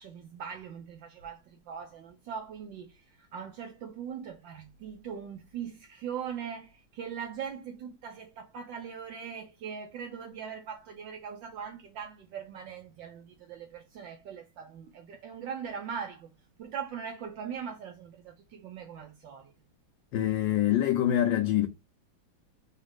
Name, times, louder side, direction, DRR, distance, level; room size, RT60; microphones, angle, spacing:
voice 1, 0.0-16.3 16.6-19.5, right 7 dB, 70° right, 1.3 m, -41 dB
voice 2, 20.1-21.7, left 12 dB, 75° left, 1.2 m, -25 dB
4.2 x 2.4 x 4.7 m
omnidirectional pair, 2.3 m